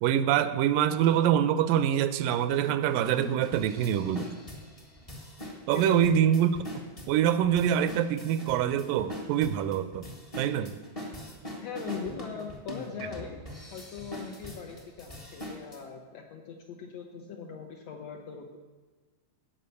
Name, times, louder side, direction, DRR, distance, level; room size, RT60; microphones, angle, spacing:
voice 1, 0.0-4.3 5.7-6.5 7.1-10.1 10.4-10.7, right 10 dB, 85° right, 13 dB, 2.2 m, -25 dB
sound 1, 1.0-1.1 1.7-1.8 2.3-15.8, equal, 30° left, 0.6 m, -43 dB
voice 2, 5.7-6.1 11.6-13.4 13.7-18.6, left 6 dB, 70° left, 2 dB, 1.6 m, -40 dB
16.5 x 5.6 x 6.8 m, 1.3 s
omnidirectional pair, 3.9 m